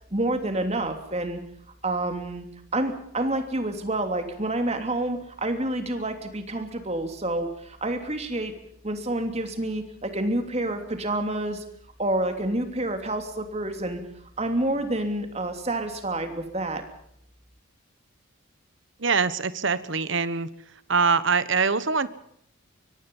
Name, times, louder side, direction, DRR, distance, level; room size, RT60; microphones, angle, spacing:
voice 1, 0.1-1.4 1.8-2.5 2.7-8.5 8.8-11.6 12.0-14.0 14.4-16.8, right 1 dB, 30° right, 6 dB, 3.0 m, -28 dB
voice 2, 19.0-20.5 20.9-22.1, right 5 dB, 60° right, 15 dB, 1.2 m, -23 dB
24.0 x 23.5 x 5.5 m, 0.68 s
head